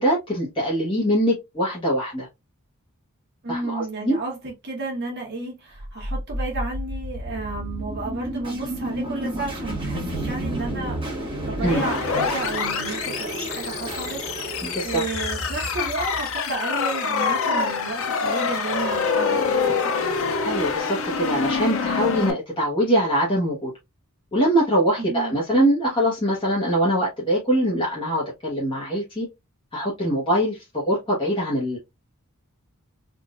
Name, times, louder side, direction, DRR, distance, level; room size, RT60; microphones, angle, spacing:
voice 1, 0.0-2.3 3.5-4.2 11.6-11.9 14.6-15.0 20.4-23.7 24.3-29.3 29.7-31.8, equal, 25° left, 1.0 m, -23 dB
voice 2, 3.4-11.0 11.4-20.2 25.0-25.4, right 3 dB, 50° right, 1.2 m, -32 dB
sound 1, 5.7-16.8, right 1 dB, 20° right, 1.4 m, -31 dB
sound 2, 11.7-22.3, left 5 dB, 60° left, 0.6 m, -26 dB
3.8 x 2.5 x 2.4 m
head